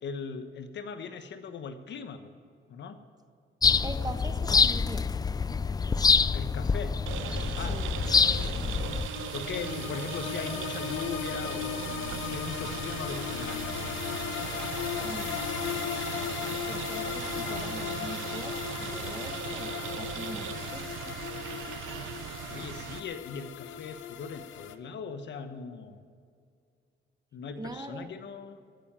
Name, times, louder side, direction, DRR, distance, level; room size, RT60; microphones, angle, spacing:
voice 1, 0.0-2.3 2.7-3.0 6.3-7.0 7.6-7.8 9.3-13.6 22.5-26.0 27.3-28.6, left 6 dB, 65° left, 9 dB, 1.2 m, -39 dB
sound 1, 3.6-9.1, left 5 dB, 20° left, 0.3 m, -26 dB
voice 2, 3.8-5.1 7.6-8.0 15.0-15.4 16.7-19.7 20.0-21.1 27.6-28.1, right 2 dB, 20° right, 7 dB, 1.3 m, -42 dB
sound 2, 7.1-23.0, right 11 dB, 80° right, 0.7 m, -38 dB
sound 3, 8.5-24.8, left 9 dB, 80° left, 0.8 m, -37 dB
14.5 x 8.8 x 8.9 m, 2.2 s
cardioid pair, 90°, 20 cm